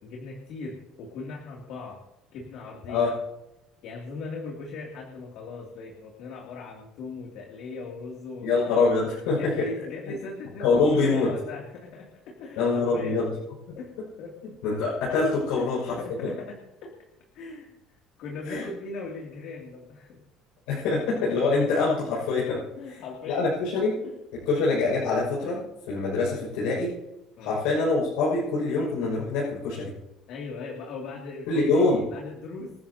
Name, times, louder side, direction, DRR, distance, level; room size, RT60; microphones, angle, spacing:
voice 1, 0.0-2.0 2.3-3.1 3.8-8.7 9.3-13.2 13.7-14.4 15.5-16.9 17.3-17.7 18.2-20.2 20.9-21.4 22.8-23.5 24.0-24.2 27.4-27.6 30.3-32.7, left 4 dB, 65° left, -1 dB, 2.8 m, -39 dB
voice 2, 8.4-9.7 10.6-11.3 12.6-13.3 14.6-16.0 18.4-18.7 20.7-23.0 23.3-24.0 24.5-26.9 27.4-29.9 31.5-32.0, left 3 dB, 85° left, -6 dB, 6.2 m, -25 dB
27.0 x 10.5 x 2.9 m, 0.91 s
cardioid pair, 130°, 0 cm